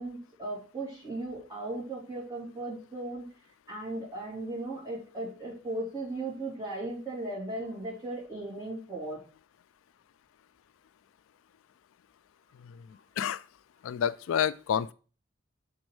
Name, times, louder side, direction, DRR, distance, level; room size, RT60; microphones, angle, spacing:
voice 1, 0.0-3.2 3.7-9.2, right 2 dB, 20° right, 3.1 m, -37 dB
voice 2, 13.8-14.9, left 8 dB, 85° left, 0.3 m, -29 dB
6.3 x 5.2 x 4.7 m
head